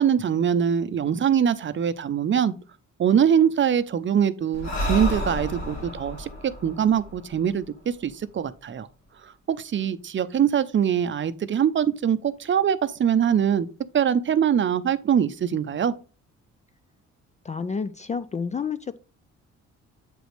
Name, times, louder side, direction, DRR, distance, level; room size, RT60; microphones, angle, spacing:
voice 1, 0.0-2.5 3.0-6.3 6.6-8.9 9.2-13.7 13.9-15.9, right 8 dB, 40° right, 0.6 m, -23 dB
Breathing, 4.5-8.1, equal, 60° left, 2.3 m, -31 dB
voice 2, 17.4-19.0, left 5 dB, 25° left, 0.3 m, -30 dB
7.6 x 5.1 x 3.2 m
cardioid pair, 90°, 30 cm